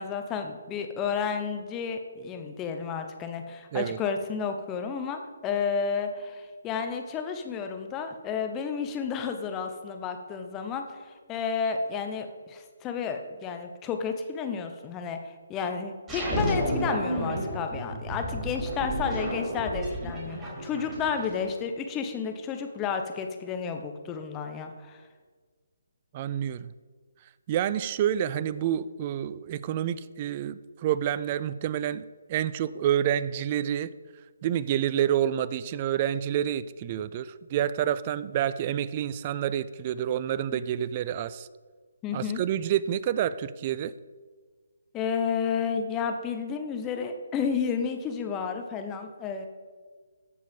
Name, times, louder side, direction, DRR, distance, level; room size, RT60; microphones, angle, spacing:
voice 1, 0.0-10.8 11.3-25.0 42.0-42.4 44.9-49.5, left 6 dB, 15° left, 6 dB, 1.0 m, -31 dB
sound 1, 16.1-21.5, equal, 15° right, 3.7 m, -31 dB
voice 2, 26.1-26.7 27.5-33.9 34.4-41.5 42.1-43.9, right 10 dB, 30° right, 16 dB, 0.4 m, -28 dB
14.5 x 5.2 x 5.4 m, 1.5 s
figure-of-eight pair, 150°, 0 cm